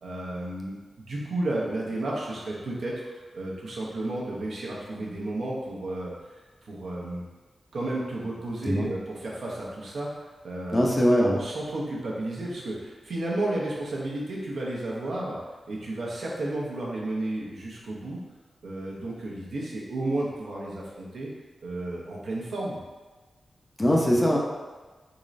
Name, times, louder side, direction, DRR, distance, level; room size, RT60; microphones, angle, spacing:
voice 1, 0.0-3.1 3.3-6.1 6.6-7.2 7.7-10.8 11.3-15.4 15.7-18.2 18.6-21.3 21.6-22.8, right 2 dB, 80° right, -4 dB, 0.8 m, -32 dB
voice 2, 10.7-11.4 23.8-24.4, equal, 20° left, -3 dB, 0.6 m, -21 dB
3.8 x 3.1 x 2.5 m, 1.3 s
wide cardioid pair, 90°, 0 cm